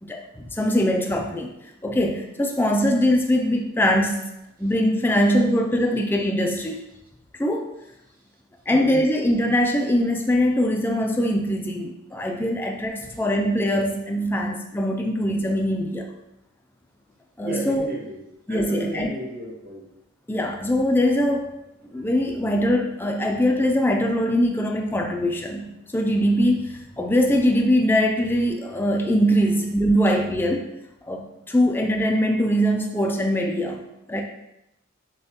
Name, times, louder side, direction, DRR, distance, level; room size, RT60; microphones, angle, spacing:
voice 1, 0.0-1.5 1.8-4.2 4.6-6.8 7.4-7.7 8.7-16.1 17.4-17.9 18.5-19.1 20.3-21.5 21.9-30.7 31.0-33.8 34.1-34.2, equal, 10° left, 1 dB, 0.3 m, -22 dB
voice 2, 17.4-18.2 18.5-19.9, equal, 45° right, -3 dB, 1.1 m, -33 dB
6.5 x 2.3 x 2.8 m, 0.86 s
head